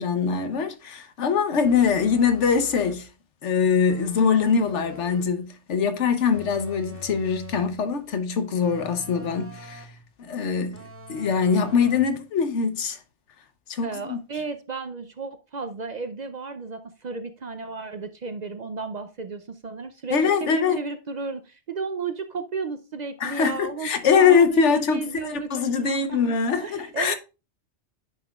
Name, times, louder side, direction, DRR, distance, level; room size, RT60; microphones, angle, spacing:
voice 1, 0.0-3.1 3.4-9.9 10.2-10.8 11.1-13.0 13.7-14.2 20.1-20.8 23.2-27.1, left 6 dB, 90° left, 1.2 m, -23 dB
sound 1, 1.6-3.1 3.9-5.4 6.3-7.8 8.6-10.0 10.7-12.2, left 1 dB, 15° right, 0.8 m, -45 dB
voice 2, 13.8-25.5 25.8-26.2 26.6-27.1, right 4 dB, 50° right, 0.5 m, -34 dB
9.7 x 5.9 x 2.3 m
omnidirectional pair, 1.2 m